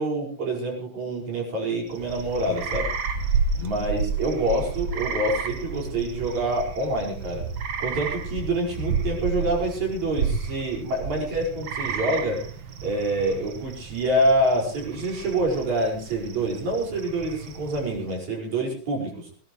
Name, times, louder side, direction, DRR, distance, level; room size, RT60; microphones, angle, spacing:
voice 1, 0.0-2.9 3.6-7.4 7.8-12.4 12.8-19.3, right 1 dB, 55° right, -1 dB, 6.6 m, -26 dB
sound 1, 1.9-18.1, right 5 dB, 90° right, 1.0 m, -31 dB
20.5 x 18.0 x 3.1 m, 0.41 s
omnidirectional pair, 4.1 m